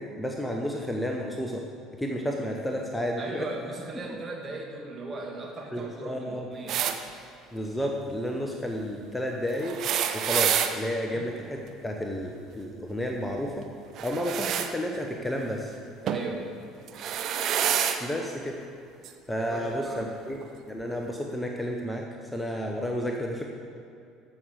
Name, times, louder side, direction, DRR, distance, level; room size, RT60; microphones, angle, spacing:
voice 1, 0.0-1.7 2.0-3.5 5.7-6.5 7.5-9.8 10.1-13.7 14.0-15.7 18.0-18.6 19.3-20.4 20.7-23.4, equal, 10° left, 1 dB, 1.0 m, -31 dB
voice 2, 3.2-6.9 11.1-11.3 16.0-16.5 19.4-20.1, right 2 dB, 30° right, 0 dB, 2.0 m, -38 dB
sound 1, 6.7-7.0 9.6-10.7 13.9-14.7 16.1-16.3 16.9-18.0 19.0-19.1 20.3-20.4, right 9 dB, 50° right, 0.7 m, -27 dB
14.5 x 6.3 x 5.2 m, 2.5 s
figure-of-eight pair, 60°, 0 cm